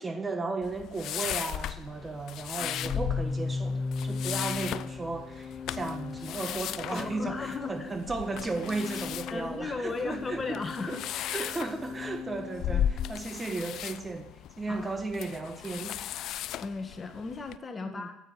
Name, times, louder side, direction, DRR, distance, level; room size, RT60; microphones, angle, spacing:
voice 1, 0.0-11.0 11.3-14.3 14.6-16.0 17.8-18.1, right 3 dB, 20° right, 6 dB, 1.5 m, -35 dB
sound 1, 0.6-17.6, left 11 dB, 65° left, 0.4 m, -37 dB
Organ, 2.6-13.3, left 4 dB, 10° left, 1.6 m, -38 dB
voice 2, 6.9-7.9 9.3-11.0 11.4-11.5 14.7-14.9 16.6-18.2, left 3 dB, 30° left, 7 dB, 1.5 m, -36 dB
9.2 x 8.8 x 9.3 m, 0.86 s
supercardioid pair, 80°, 0 cm